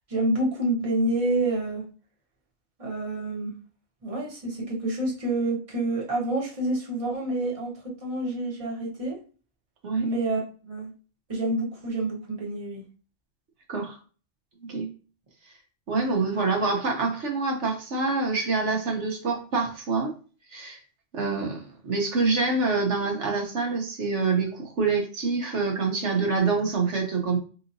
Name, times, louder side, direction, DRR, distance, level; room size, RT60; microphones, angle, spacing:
voice 1, 0.1-1.8 2.8-3.5 4.0-7.7 8.0-9.2 10.0-10.9 11.3-12.8, right 2 dB, 30° right, -3 dB, 1.2 m, -28 dB
voice 2, 15.9-20.1 20.5-20.8 21.1-27.4, right 4 dB, 65° right, 1 dB, 1.3 m, -26 dB
4.7 x 2.9 x 2.6 m, 0.37 s
omnidirectional pair, 1.3 m